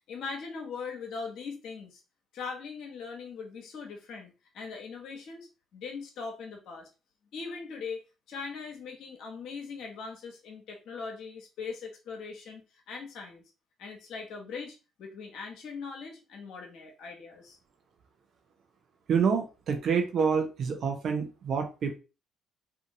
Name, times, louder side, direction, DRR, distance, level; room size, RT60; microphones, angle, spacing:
voice 1, 0.1-2.0 2.3-6.9 7.3-12.6 12.9-13.4 13.8-17.6, left 5 dB, 65° left, 2 dB, 0.8 m, -40 dB
voice 2, 19.1-22.0, right 6 dB, 60° right, 4 dB, 0.7 m, -27 dB
2.7 x 2.6 x 2.6 m, 0.30 s
hypercardioid pair, 50°, 0 cm